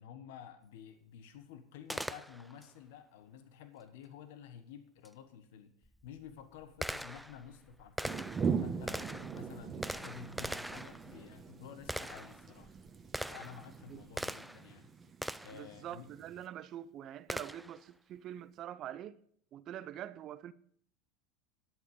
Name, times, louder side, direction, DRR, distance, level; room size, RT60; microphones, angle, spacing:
voice 1, 0.0-5.7 6.0-8.3 8.6-12.8 13.3-14.9 15.4-16.1, left 8 dB, 70° left, 1.2 m, -51 dB
Gunshot gunfire, 1.9-2.7 5.0-5.1 5.9-14.7 15.2-15.7 17.3-17.8, right 1 dB, ahead, 0.4 m, -42 dB
sound 1, 8.0-16.5, right 6 dB, 25° right, 1.2 m, -41 dB
voice 2, 15.5-19.2 19.5-20.5, right 11 dB, 45° right, 0.6 m, -45 dB
11.0 x 8.4 x 5.2 m
hypercardioid pair, 95°, 0 cm